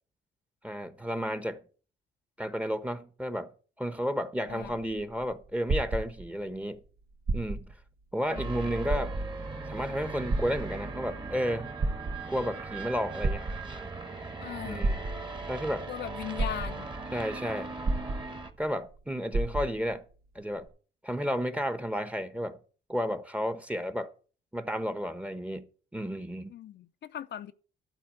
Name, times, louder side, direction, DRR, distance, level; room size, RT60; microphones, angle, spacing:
voice 1, 0.6-1.6 2.4-3.5 3.8-6.8 7.3-7.7 8.1-9.1 9.7-11.7 12.3-13.4 14.6-15.0 15.5-15.9 17.1-17.7 18.6-20.0 20.3-20.7 21.0-22.6 22.9-24.1 24.5-25.7 25.9-26.5, equal, 5° right, 1.1 m, -32 dB
voice 2, 4.5-4.8 8.3-8.5 14.4-14.9 15.9-16.9 26.5-27.5, left 10 dB, 60° left, 0.7 m, -39 dB
sound 1, 4.5-6.6 7.2-7.8 8.3-8.4 8.8-9.5 10.3-11.1 11.6-12.5 13.2-14.0 14.8-15.5 16.0-16.1 16.4-17.1 17.8-18.7 18.9-19.0 19.3-19.9 20.7-20.8, right 2 dB, 50° right, 1.4 m, -31 dB
sound 2, 8.3-18.5, right 3 dB, 25° right, 1.6 m, -39 dB
12.0 x 4.3 x 8.1 m
cardioid pair, 90°, 20 cm